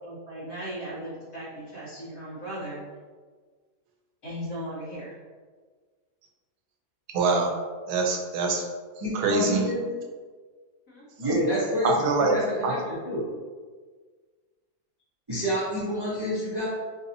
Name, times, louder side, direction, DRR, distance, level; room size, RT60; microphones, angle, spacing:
voice 1, 0.0-2.8 4.2-5.2 10.9-11.0, equal, 65° left, -9 dB, 1.9 m, -37 dB
voice 2, 7.1-7.5 7.9-8.6 9.1-9.7 11.8-12.4 12.6-12.7, right 3 dB, 80° right, 1 dB, 1.1 m, -24 dB
voice 3, 9.0-9.8 11.2-12.8 13.1-13.3 15.3-16.7, equal, 35° right, -8 dB, 0.3 m, -28 dB
3.9 x 2.7 x 2.6 m, 1.5 s
omnidirectional pair, 1.7 m